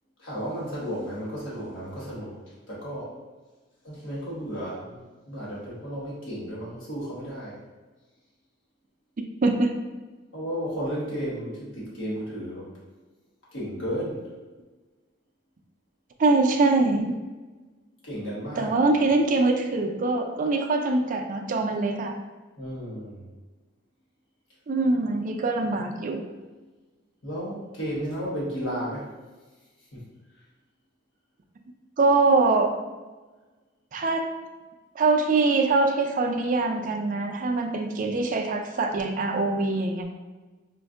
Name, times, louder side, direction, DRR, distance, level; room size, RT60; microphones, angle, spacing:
voice 1, 0.2-2.4 2.7-3.1 3.8-7.6 10.3-12.7 13.5-14.2 18.0-18.7 22.6-23.2 27.2-29.1 29.9-30.0, equal, 75° left, -7 dB, 1.3 m, -33 dB
voice 2, 9.2-9.7 16.2-17.1 18.6-22.1 24.7-26.2 32.0-32.7 33.9-34.3 35.0-40.1, right 3 dB, 45° right, 4 dB, 0.4 m, -23 dB
5.1 x 2.6 x 2.4 m, 1.2 s
head